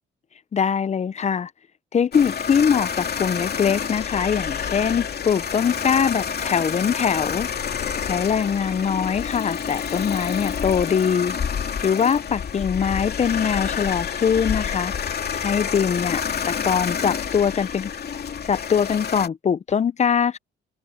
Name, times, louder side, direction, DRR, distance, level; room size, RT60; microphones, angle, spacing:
voice 1, 0.5-1.5 1.9-7.5 8.0-11.4 11.8-17.9 18.4-20.4, left 7 dB, 35° left, 0.6 m, -22 dB
sound 1, 2.1-19.3, left 7 dB, 55° left, 2.7 m, -28 dB
cardioid pair, 90°, 20 cm